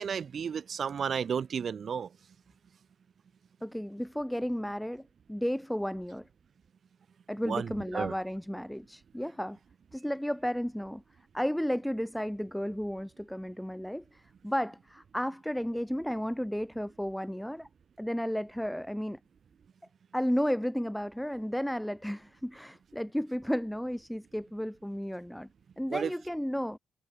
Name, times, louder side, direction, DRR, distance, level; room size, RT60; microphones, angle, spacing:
voice 1, 0.0-2.1 7.4-8.1 25.9-26.1, right 7 dB, 55° right, 0.3 m, -32 dB
voice 2, 3.6-5.0 5.3-6.3 7.3-9.6 9.9-11.0 11.3-17.7 18.0-19.2 20.1-25.5 25.8-26.8, equal, 5° left, 1.6 m, -33 dB
hypercardioid pair, 40°, 0 cm